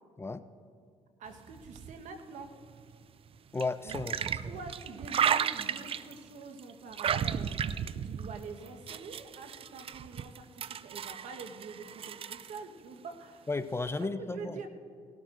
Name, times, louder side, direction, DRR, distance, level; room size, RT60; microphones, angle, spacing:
voice 1, 1.2-2.5 3.8-4.0 4.2-13.5 14.0-14.7, right 4 dB, 70° right, 6 dB, 1.2 m, -46 dB
sound 1, 1.3-3.0 3.6-6.2 6.6-12.6, right 8 dB, 45° right, 0.4 m, -34 dB
voice 2, 3.5-4.6 13.5-14.6, left 3 dB, 20° left, 12 dB, 0.5 m, -34 dB
18.5 x 13.0 x 2.5 m, 2.3 s
supercardioid pair, 65°, 13 cm